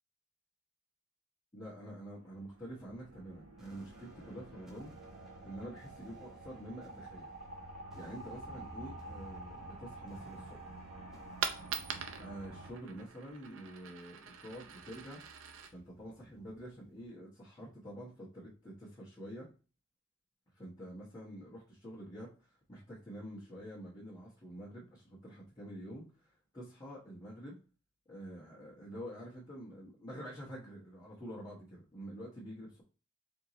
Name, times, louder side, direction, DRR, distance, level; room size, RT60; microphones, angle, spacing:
voice 1, 1.5-4.9 5.4-7.3 7.9-10.6 12.2-15.2 15.7-19.5 20.5-27.6 28.1-32.8, equal, 20° left, -7 dB, 1.1 m, -47 dB
sound 1, 2.1-12.7, right 2 dB, 80° right, 0.9 m, -49 dB
sound 2, 3.6-14.6, equal, ahead, 0.8 m, -65 dB
Coin (dropping), 11.1-17.1, right 7 dB, 65° right, 0.5 m, -44 dB
4.5 x 2.7 x 2.9 m, 0.35 s
head